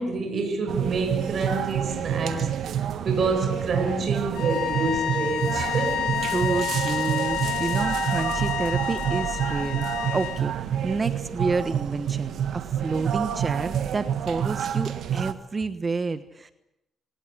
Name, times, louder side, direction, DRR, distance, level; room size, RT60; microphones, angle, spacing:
voice 1, 0.0-6.1, right 3 dB, 50° right, 6.5 m, -28 dB
sound 1, 0.7-15.3, right 9 dB, 70° right, 1.5 m, -28 dB
sound 2, 4.3-10.4, left 10 dB, 85° left, 1.9 m, -30 dB
voice 2, 6.3-9.9 10.1-16.5, right 4 dB, 30° right, 1.2 m, -29 dB
25.5 x 18.5 x 8.5 m
cardioid pair, 90°, 0 cm